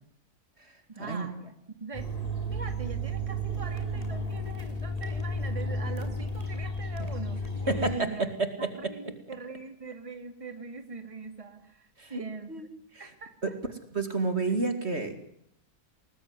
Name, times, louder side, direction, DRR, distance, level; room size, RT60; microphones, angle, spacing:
voice 1, 0.9-1.5 1.8-2.1 2.5-8.3 8.6-12.7 13.0-13.6, right 4 dB, 20° right, 7 dB, 2.5 m, -42 dB
sound 1, 1.9-8.0, equal, 25° left, 5.6 m, -33 dB
voice 2, 7.7-8.3 12.0-12.2 12.5-12.6 12.9-13.1 13.4-13.5 13.9-15.2, right 3 dB, 45° right, 8 dB, 2.8 m, -29 dB
29.5 x 20.0 x 9.8 m, 0.72 s
omnidirectional pair, 1.6 m